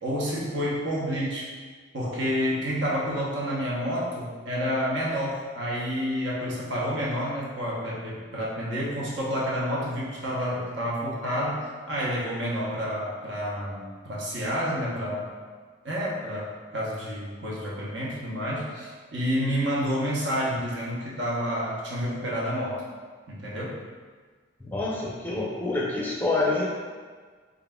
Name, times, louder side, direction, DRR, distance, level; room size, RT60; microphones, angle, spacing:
voice 1, 0.0-1.5 1.9-15.3 15.8-22.8 23.3-23.8, equal, 70° right, -5 dB, 0.9 m, -29 dB
voice 2, 24.6-26.7, left 2 dB, 10° left, -4 dB, 0.5 m, -27 dB
3.9 x 3.6 x 2.3 m, 1.6 s
head